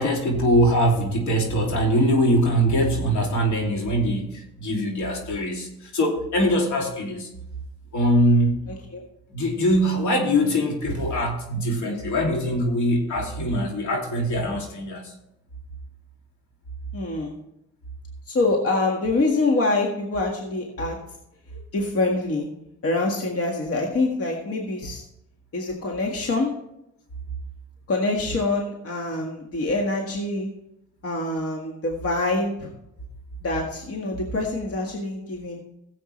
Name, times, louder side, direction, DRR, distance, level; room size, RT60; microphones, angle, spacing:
voice 1, 0.0-7.3 7.9-8.6 9.3-15.1, equal, 70° left, 1 dB, 2.9 m, -22 dB
voice 2, 8.7-9.0 16.9-17.3 18.3-21.0 21.5-22.5 22.8-25.0 25.5-26.5 27.9-30.5 31.0-32.7 33.4-35.6, left 2 dB, 50° left, 1 dB, 1.8 m, -25 dB
16.0 x 7.7 x 3.3 m, 0.82 s
cardioid pair, 90°, 30 cm